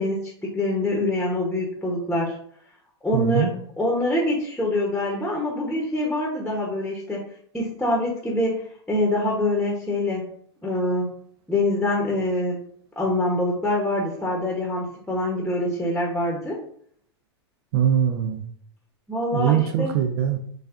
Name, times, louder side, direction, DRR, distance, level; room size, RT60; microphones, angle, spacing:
voice 1, 0.0-2.4 3.0-3.5 3.8-7.2 7.5-10.3 10.6-11.1 11.5-12.6 13.0-16.6 19.1-19.9, left 1 dB, 5° left, -1 dB, 0.9 m, -25 dB
voice 2, 3.1-3.5 17.7-18.4 19.3-20.4, right 9 dB, 55° right, 6 dB, 0.5 m, -22 dB
6.3 x 2.3 x 2.5 m, 0.63 s
hypercardioid pair, 115°, 15 cm